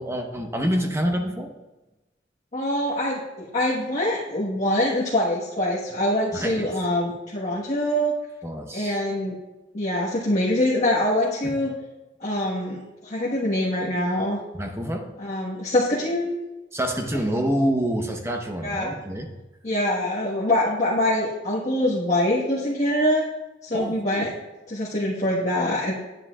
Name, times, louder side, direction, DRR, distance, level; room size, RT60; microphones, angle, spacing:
voice 1, 0.0-1.5 6.3-6.7 8.4-9.0 11.4-11.7 14.5-15.1 16.7-19.3 23.7-24.3, equal, 15° right, 4 dB, 0.9 m, -27 dB
voice 2, 2.5-8.1 8.7-9.3 9.7-11.7 12.2-14.4 15.2-16.4 17.1-17.2 18.6-18.9 19.6-23.2 23.6-24.3 24.7-25.9, left 1 dB, 40° left, -7 dB, 1.3 m, -24 dB
9.8 x 9.7 x 2.4 m, 1.1 s
head